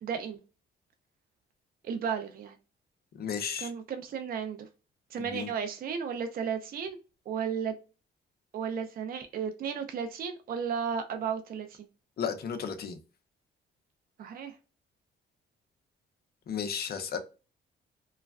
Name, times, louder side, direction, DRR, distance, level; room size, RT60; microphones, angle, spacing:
voice 1, 0.0-0.4 1.8-2.6 3.6-4.7 5.1-7.0 7.3-7.7 8.5-11.8 14.2-14.5, right 7 dB, 50° right, 0.5 m, -34 dB
voice 2, 3.2-3.7 5.2-5.5 12.2-13.0 16.5-17.2, left 7 dB, 50° left, 0.6 m, -34 dB
3.1 x 2.3 x 2.3 m
cardioid pair, 90°, 20 cm